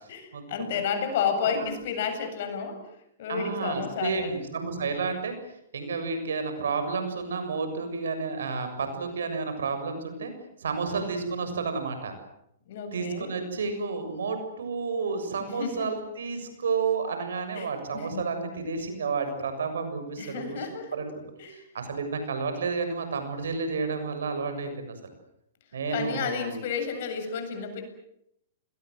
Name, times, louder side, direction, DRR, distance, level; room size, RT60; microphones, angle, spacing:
voice 1, 0.1-2.8 3.2-4.3 12.7-13.3 15.4-16.0 17.5-18.2 20.2-21.0 21.4-21.6 25.9-27.8, left 6 dB, 60° left, 7 dB, 7.8 m, -31 dB
voice 2, 3.3-5.3 5.7-10.3 10.6-12.1 12.9-21.1 21.5-24.9 25.7-26.6, right 4 dB, 80° right, 8 dB, 7.0 m, -31 dB
30.0 x 21.5 x 7.9 m, 0.78 s
hypercardioid pair, 130°, 0 cm